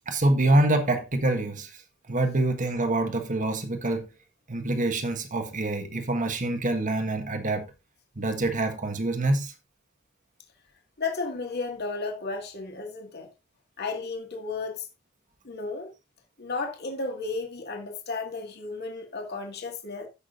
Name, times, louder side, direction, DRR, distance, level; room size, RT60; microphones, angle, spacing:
voice 1, 0.1-1.7 2.1-4.1 4.5-7.7 8.1-9.5, right 2 dB, 40° right, 1.5 m, -25 dB
voice 2, 11.0-13.3 13.8-14.9 15.4-15.9 16.4-20.1, left 3 dB, 55° left, 2.1 m, -33 dB
15.5 x 6.2 x 2.6 m
head